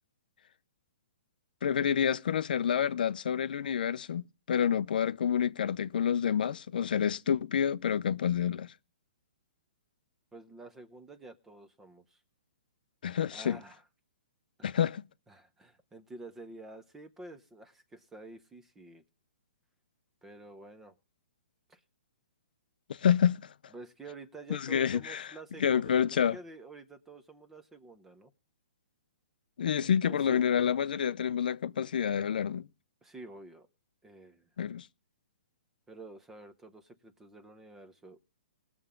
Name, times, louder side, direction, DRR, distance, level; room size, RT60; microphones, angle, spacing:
voice 1, 1.6-8.7 13.0-13.6 14.6-15.0 22.9-23.5 24.5-25.3 25.6-26.4 29.6-32.7 34.6-34.9, left 8 dB, 60° left, 0.5 m, -28 dB
voice 2, 10.3-12.2 13.3-13.8 14.6-14.7 15.3-19.0 20.2-20.9 21.7-21.8 23.7-28.3 29.8-30.5 33.0-33.7 34.0-34.5 35.9-38.2, right 2 dB, 5° right, 0.7 m, -49 dB
20.0 x 7.0 x 3.7 m
hypercardioid pair, 170°, 5 cm